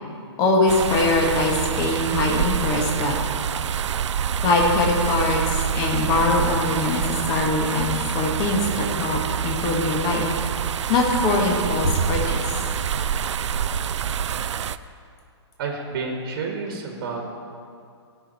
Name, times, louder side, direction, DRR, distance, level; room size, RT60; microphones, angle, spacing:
voice 1, 0.4-3.2 4.4-10.2 10.9-12.6, left 2 dB, 25° left, 0 dB, 1.6 m, -22 dB
sound 1, 0.7-14.8, right 8 dB, 80° right, 0.4 m, -26 dB
voice 2, 15.6-17.2, right 4 dB, 45° right, 1 dB, 1.6 m, -30 dB
16.5 x 6.4 x 4.2 m, 2.4 s
hypercardioid pair, 150°, 15 cm